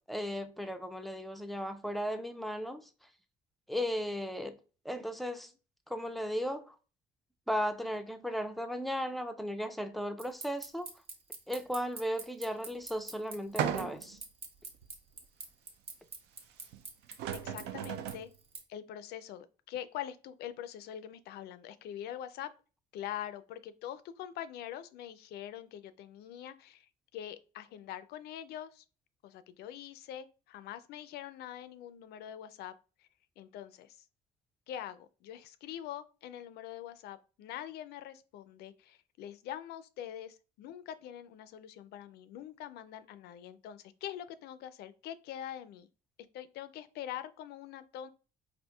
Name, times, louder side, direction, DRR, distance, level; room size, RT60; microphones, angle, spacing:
voice 1, 0.1-2.9 3.7-4.6 4.8-5.5 5.9-6.8 7.5-10.9 11.5-14.2, equal, ahead, 0.4 m, -36 dB
sound 1, 10.2-18.6, right 4 dB, 35° right, 0.8 m, -44 dB
sound 2, 13.6-14.2 14.8-14.9 16.7-16.8 17.1-18.3, right 9 dB, 80° right, 0.4 m, -35 dB
voice 2, 17.3-18.3 18.7-22.5 22.9-28.8 29.2-32.7 33.0-33.1 33.4-34.0 34.7-45.9 46.3-48.1, left 11 dB, 75° left, 0.4 m, -44 dB
4.2 x 2.4 x 2.3 m
cardioid pair, 110°, 17 cm